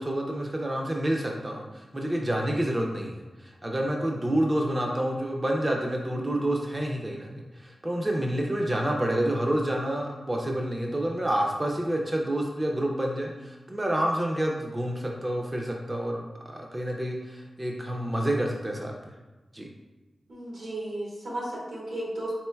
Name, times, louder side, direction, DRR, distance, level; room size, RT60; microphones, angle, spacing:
voice 1, 0.0-19.1 19.5-19.7, right 1 dB, 20° right, -1 dB, 0.4 m, -28 dB
voice 2, 20.3-22.3, right 1 dB, 85° right, -5 dB, 1.4 m, -34 dB
4.3 x 3.7 x 2.2 m, 1.2 s
wide cardioid pair, 100°, 0 cm